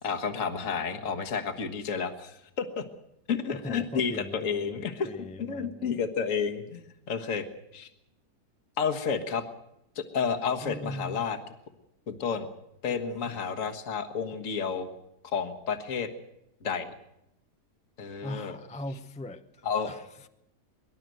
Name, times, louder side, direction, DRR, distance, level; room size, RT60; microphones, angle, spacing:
voice 1, 0.0-2.8 3.3-5.1 5.4-7.5 7.7-7.9 8.8-9.4 9.9-11.4 12.1-12.5 12.8-14.9 15.3-16.1 16.6-16.9 18.0-18.6 19.6-19.9, left 6 dB, 55° left, 6 dB, 1.8 m, -31 dB
voice 2, 3.5-6.0 10.6-11.3 12.9-13.4 18.2-20.3, left 1 dB, 10° left, 9 dB, 0.5 m, -40 dB
24.0 x 11.5 x 9.2 m, 0.85 s
omnidirectional pair, 1.7 m